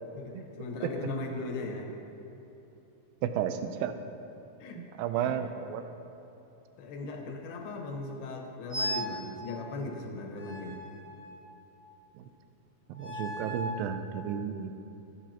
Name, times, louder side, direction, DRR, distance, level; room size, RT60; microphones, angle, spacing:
voice 1, 0.2-1.9 4.6-4.8 5.1-5.4 6.8-10.8, left 3 dB, 80° left, 1 dB, 3.1 m, -38 dB
voice 2, 3.2-3.9 4.8-5.8 12.2-12.3 12.9-14.8, right 9 dB, 80° right, 9 dB, 2.4 m, -32 dB
sound 1, 8.7-9.2 10.4-11.6 12.9-13.8, equal, 30° right, 2.5 m, -36 dB
24.0 x 8.0 x 2.9 m, 3.0 s
omnidirectional pair, 4.4 m